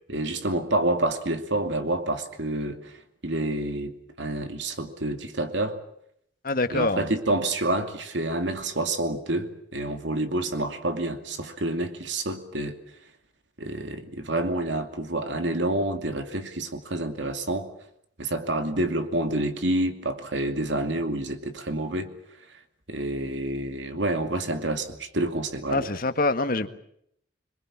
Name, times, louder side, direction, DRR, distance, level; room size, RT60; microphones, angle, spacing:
voice 1, 0.1-2.9 3.2-5.8 6.7-12.8 13.6-17.7 18.2-22.1 22.9-25.9, right 1 dB, 80° right, 2.6 m, -28 dB
voice 2, 6.4-7.1 25.7-26.7, left 2 dB, 50° left, 1.7 m, -25 dB
26.0 x 22.5 x 7.5 m
head